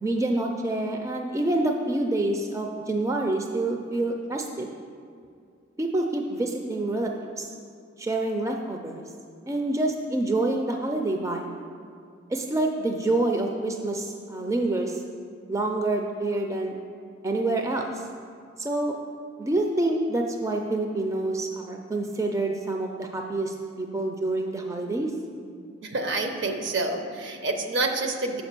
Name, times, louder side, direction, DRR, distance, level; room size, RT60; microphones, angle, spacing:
voice 1, 0.0-4.7 5.8-7.5 8.0-9.0 9.5-11.5 12.3-15.0 15.5-16.8 17.2-18.0 18.6-19.0 19.4-25.1, right 2 dB, 15° right, 2 dB, 0.4 m, -27 dB
voice 2, 25.8-28.4, right 2 dB, 60° right, 5 dB, 0.8 m, -28 dB
6.5 x 5.1 x 6.6 m, 2.3 s
head